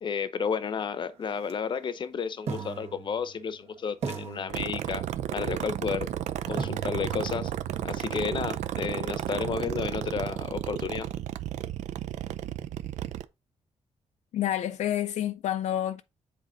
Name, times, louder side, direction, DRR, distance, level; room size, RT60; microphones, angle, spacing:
voice 1, 0.0-5.0 5.3-6.1 6.5-7.5 7.8-11.1, left 6 dB, 45° left, 0.7 m, -32 dB
sound 1, 1.4-1.5 2.5-3.6 4.0-5.3 6.6-10.5, right 6 dB, 70° right, 1.7 m, -40 dB
sound 2, 4.5-13.3, right 11 dB, 90° right, 0.5 m, -33 dB
voice 2, 14.3-16.0, left 11 dB, 80° left, 0.5 m, -28 dB
7.6 x 4.2 x 3.8 m
wide cardioid pair, 145°, 12 cm